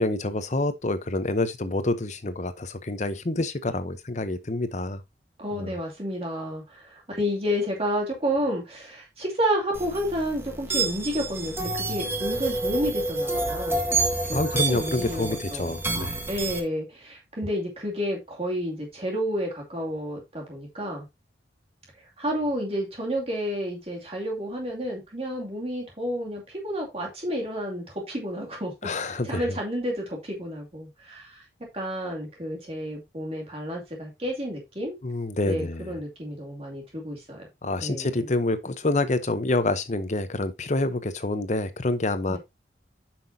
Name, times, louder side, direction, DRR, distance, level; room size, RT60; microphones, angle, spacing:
voice 1, 0.0-5.0 5.5-5.7 14.3-16.3 28.8-29.4 35.0-36.0 37.6-42.4, left 2 dB, 40° left, 0.8 m, -27 dB
voice 2, 5.4-13.9 14.3-15.8 16.3-21.1 22.2-31.4 31.7-35.0 35.4-37.5 37.8-38.3 42.3-42.4, equal, 35° right, 2.5 m, -30 dB
sound 1, 9.7-16.6, right 2 dB, 15° right, 1.3 m, -28 dB
9.1 x 6.0 x 2.7 m
head